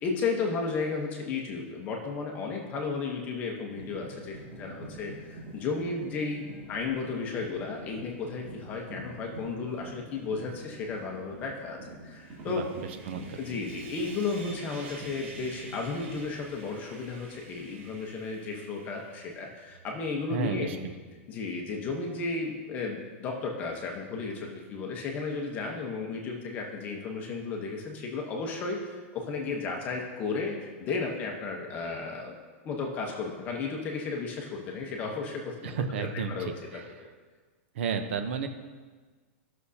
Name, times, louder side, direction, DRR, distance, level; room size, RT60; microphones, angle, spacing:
voice 1, 0.0-12.6 13.4-20.8 21.3-32.3 32.6-37.1, left 4 dB, 25° left, 1 dB, 1.0 m, -34 dB
sound 1, 3.7-17.2 17.5-17.9 19.7-19.9 21.7-22.3, right 1 dB, 30° right, 2.3 m, -47 dB
Sawing, 12.1-19.6, right 3 dB, 90° right, 2.7 m, -49 dB
voice 2, 12.5-13.4 20.3-20.9 35.6-36.9 37.7-38.5, right 6 dB, 60° right, 7 dB, 0.8 m, -33 dB
13.5 x 6.3 x 2.8 m, 1.4 s
supercardioid pair, 170°, 7 cm